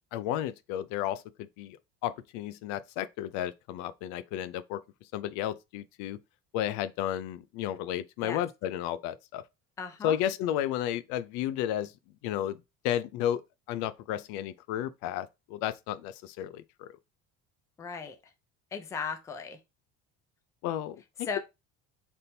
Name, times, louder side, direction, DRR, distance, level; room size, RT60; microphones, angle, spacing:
voice 1, 0.1-4.8 5.1-6.2 6.5-9.4 10.0-11.9 12.2-12.6 12.8-13.4 13.7-16.9 20.6-21.4, left 11 dB, 75° left, 0.5 m, -33 dB
voice 2, 9.8-10.2 17.8-18.2 18.7-19.6 21.2-21.4, left 5 dB, 10° left, 0.3 m, -36 dB
4.2 x 3.5 x 2.7 m
cardioid pair, 170°, 29 cm